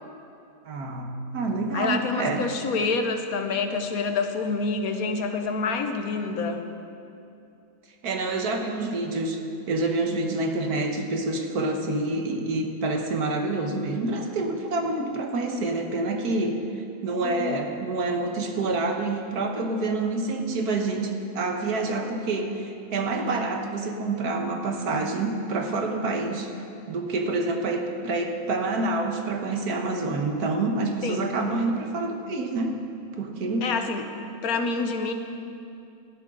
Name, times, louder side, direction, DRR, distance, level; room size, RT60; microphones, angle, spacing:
voice 1, 0.6-2.5 8.0-9.4 9.7-26.5 26.9-32.8 33.1-33.7, right 2 dB, 85° right, 3 dB, 1.7 m, -27 dB
voice 2, 1.7-6.6 17.2-17.6 31.0-31.3 33.6-34.0 34.4-35.1, left 4 dB, 70° left, 6 dB, 1.4 m, -27 dB
18.0 x 12.5 x 3.8 m, 2.7 s
omnidirectional pair, 1.6 m